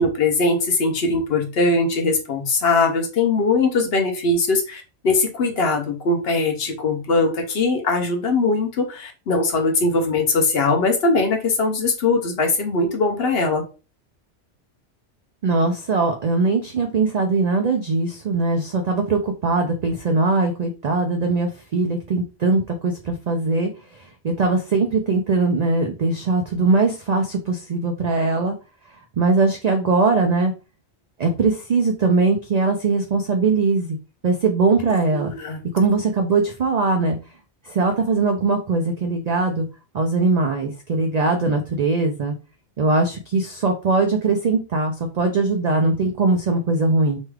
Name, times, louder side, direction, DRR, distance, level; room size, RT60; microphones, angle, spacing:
voice 1, 0.0-13.6 35.1-35.6, left 3 dB, 60° left, 3 dB, 0.9 m, -21 dB
voice 2, 15.4-28.5 29.2-30.5 31.2-34.0 34.2-35.3 35.7-37.2 37.6-39.7 39.9-42.3 42.8-47.2, right 3 dB, 75° right, 4 dB, 0.3 m, -21 dB
3.1 x 2.3 x 3.2 m, 0.32 s
omnidirectional pair, 1.2 m